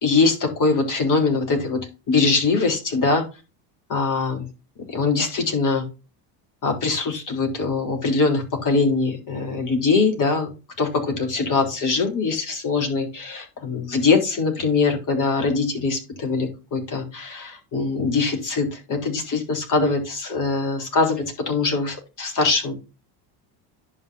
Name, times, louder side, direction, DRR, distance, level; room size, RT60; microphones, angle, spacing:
voice 1, 0.0-3.2 3.9-4.5 4.9-5.8 6.6-10.5 10.8-22.7, left 4 dB, 40° left, 4 dB, 3.6 m, -22 dB
10.5 x 5.9 x 2.6 m, 0.29 s
supercardioid pair, 100°, 47 cm